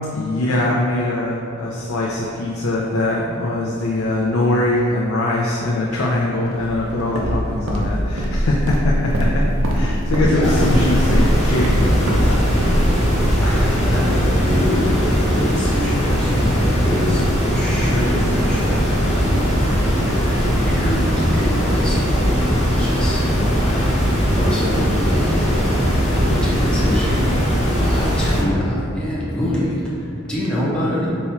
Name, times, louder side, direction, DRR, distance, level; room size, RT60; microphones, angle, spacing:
voice 1, 0.1-9.4 9.7-12.7 16.5-16.6, left 2 dB, 80° left, -4 dB, 0.5 m, -22 dB
Walk footsteps, 6.5-14.4, equal, 75° right, 0.6 m, -22 dB
voice 2, 10.1-10.6 13.4-17.2 17.5-27.2 27.8-29.8 30.3-31.1, left 1 dB, 5° left, -8 dB, 0.6 m, -25 dB
sound 1, 10.4-28.4, equal, 30° left, 1.0 m, -19 dB
4.2 x 2.3 x 4.3 m, 2.5 s
head